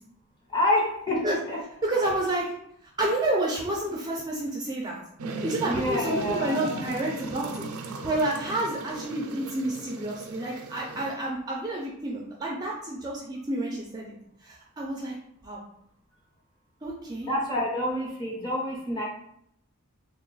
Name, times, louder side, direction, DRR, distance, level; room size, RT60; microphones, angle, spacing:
voice 1, 0.5-1.6 5.6-6.8 17.2-19.1, left 1 dB, 20° left, -3 dB, 0.8 m, -28 dB
voice 2, 1.8-2.5 2.8-5.0 5.3-14.1 14.4-15.1 15.4-15.6 16.8-17.3, right 1 dB, 20° right, -2 dB, 0.4 m, -30 dB
sound 1, 5.2-11.1, right 2 dB, 80° right, 0.4 m, -37 dB
3.3 x 2.3 x 3.9 m, 0.73 s
head